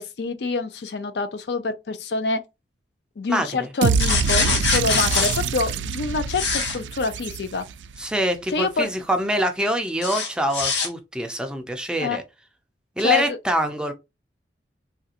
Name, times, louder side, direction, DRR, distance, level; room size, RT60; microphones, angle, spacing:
voice 1, 0.0-2.4 3.2-7.6 8.5-8.9 12.0-12.2 13.0-13.4, left 4 dB, 65° left, 0.4 m, -26 dB
voice 2, 3.3-3.7 8.0-12.2 13.0-13.9, right 1 dB, 5° right, 0.4 m, -25 dB
sound 1, 3.8-7.9, right 5 dB, 90° right, 0.3 m, -25 dB
sound 2, 4.0-5.4 6.3-6.8 10.0-10.9, left 4 dB, 85° left, 1.0 m, -23 dB
3.2 x 2.5 x 2.8 m
head